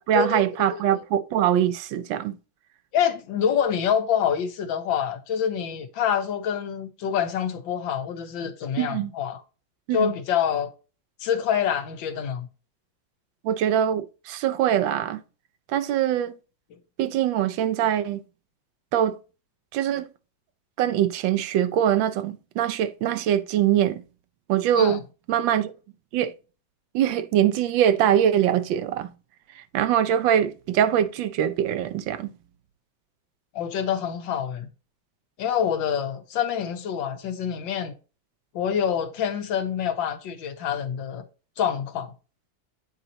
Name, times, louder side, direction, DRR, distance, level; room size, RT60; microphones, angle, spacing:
voice 1, 0.0-2.3 8.8-9.1 9.9-10.1 13.4-15.2 15.7-16.3 17.0-18.2 18.9-19.2 19.7-20.1 20.8-24.0 24.5-25.0 25.3-25.7 26.1-26.3 26.9-29.1 29.6-32.3, right 10 dB, 80° right, 1.4 m, -23 dB
voice 2, 2.9-9.4 9.9-10.7 11.2-12.5 24.8-25.0 33.6-34.7 35.4-37.9 38.6-41.2 41.6-42.1, left 8 dB, 80° left, 1.6 m, -26 dB
9.1 x 4.0 x 2.8 m
omnidirectional pair, 2.1 m